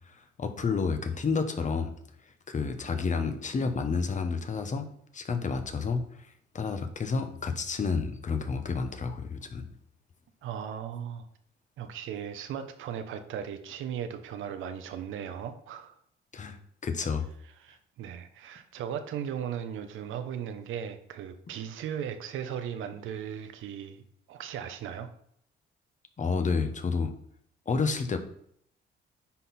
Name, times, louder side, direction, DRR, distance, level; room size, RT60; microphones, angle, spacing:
voice 1, 0.1-1.9 2.5-4.8 5.1-6.0 6.5-9.7 16.3-16.6 16.8-17.3 26.2-27.1 27.7-28.2, left 4 dB, 40° left, 7 dB, 1.1 m, -30 dB
voice 2, 10.4-11.3 11.8-16.0 17.6-24.0 24.3-25.1, right 8 dB, 85° right, 8 dB, 0.9 m, -37 dB
9.8 x 4.1 x 4.3 m, 0.68 s
cardioid pair, 90°, 20 cm